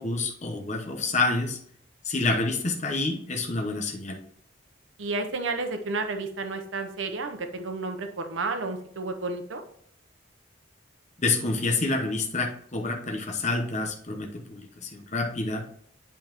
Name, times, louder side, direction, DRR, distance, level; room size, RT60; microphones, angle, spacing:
voice 1, 0.0-1.6 2.0-4.2 11.2-15.6, left 3 dB, 35° left, 2 dB, 0.9 m, -28 dB
voice 2, 5.0-9.6, right 3 dB, 85° right, 6 dB, 0.8 m, -31 dB
8.7 x 5.5 x 3.0 m, 0.65 s
head